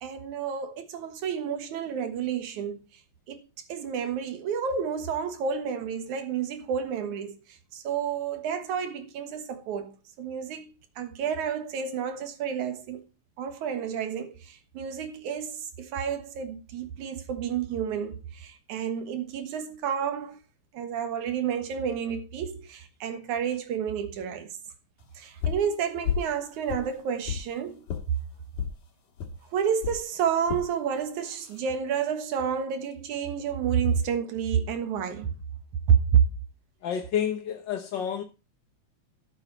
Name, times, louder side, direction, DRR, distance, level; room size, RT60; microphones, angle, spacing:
voice 1, 0.0-2.8 3.3-13.0 13.4-20.4 20.7-24.5 25.1-27.9 29.5-35.3 35.9-36.2, right 7 dB, 85° right, 2.8 m, -30 dB
sound 1, 25.4-25.7 26.0-26.3 26.7-27.5 27.9-28.0 28.6-28.8 29.2-29.3 29.8-30.0 30.5-30.7 31.3-31.6, left 8 dB, 80° left, 3.0 m, -31 dB
voice 2, 36.8-38.2, left 8 dB, 60° left, 1.2 m, -29 dB
12.5 x 8.1 x 4.0 m
omnidirectional pair, 3.3 m